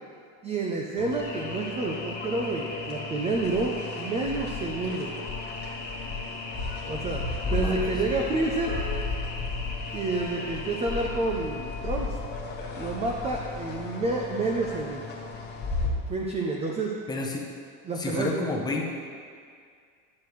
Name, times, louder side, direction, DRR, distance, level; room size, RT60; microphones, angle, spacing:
voice 1, 0.4-5.2 6.8-8.8 9.9-12.2 12.8-15.0 16.1-17.0 17.8-18.4, right 3 dB, 20° right, 0 dB, 0.4 m, -29 dB
sound 1, 1.0-15.9, left 3 dB, 25° left, 1.2 m, -34 dB
voice 2, 7.5-7.9 17.1-17.4 18.0-18.9, left 2 dB, 10° left, -1 dB, 0.8 m, -30 dB
10.5 x 6.6 x 3.1 m, 2.1 s
cardioid pair, 145°, 37 cm